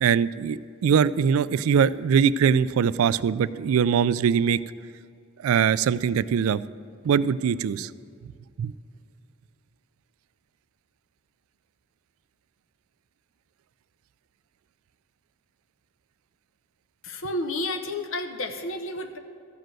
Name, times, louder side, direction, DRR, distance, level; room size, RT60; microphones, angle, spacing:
voice 1, 0.0-4.6 5.4-6.6 7.0-7.9 8.6-8.7, right 7 dB, 75° right, 16 dB, 0.3 m, -22 dB
voice 2, 17.0-19.2, left 1 dB, 65° left, 7 dB, 0.9 m, -31 dB
13.5 x 5.2 x 7.6 m, 2.4 s
head